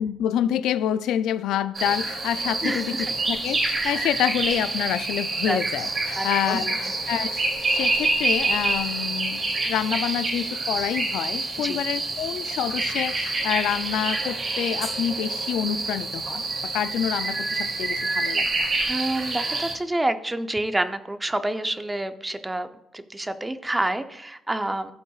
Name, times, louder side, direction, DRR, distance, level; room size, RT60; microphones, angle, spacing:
voice 1, 0.0-18.6, left 10 dB, 85° left, 0.3 m, -27 dB
sound 1, 1.7-19.7, right 3 dB, 45° right, 2.7 m, -27 dB
voice 2, 2.6-3.1 3.8-4.0 5.5-5.6 6.2-6.6 11.6-11.8 18.9-22.7 22.9-24.9, right 1 dB, 15° right, 0.6 m, -28 dB
15.0 x 5.6 x 2.4 m
cardioid pair, 90°, 0 cm